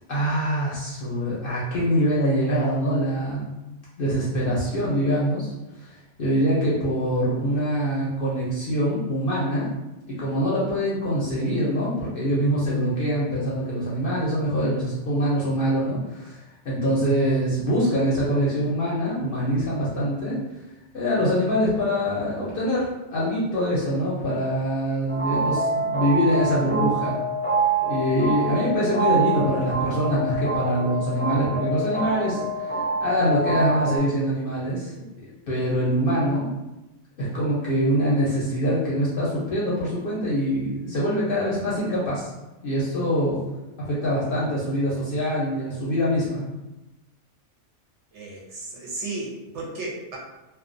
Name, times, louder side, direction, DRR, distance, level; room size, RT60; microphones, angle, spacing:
voice 1, 0.1-3.5 4.0-5.5 5.8-9.7 10.1-20.4 20.9-27.2 27.9-34.9 35.5-36.5 37.2-42.3 42.6-43.4 43.8-46.4, equal, 55° left, -7 dB, 0.6 m, -24 dB
sound 1, 25.1-34.0, right 3 dB, 10° left, 0.5 m, -26 dB
voice 2, 48.1-50.2, right 2 dB, 65° right, -3 dB, 0.8 m, -34 dB
2.3 x 2.2 x 2.5 m, 0.99 s
omnidirectional pair, 1.4 m